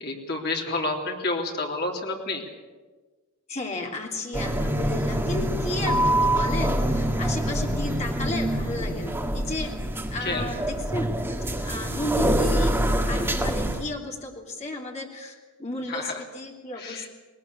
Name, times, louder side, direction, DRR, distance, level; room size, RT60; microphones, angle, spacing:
voice 1, 0.0-2.4 10.2-10.6 15.9-16.2 16.8-17.1, left 2 dB, 45° left, 1 dB, 3.4 m, -30 dB
voice 2, 3.5-9.7 10.1-11.2 11.4-12.7 13.1-17.1, left 2 dB, 30° left, 0 dB, 3.2 m, -33 dB
sound 1, 4.3-13.8, right 1 dB, 10° right, 1.7 m, -25 dB
20.0 x 19.5 x 8.6 m, 1.3 s
head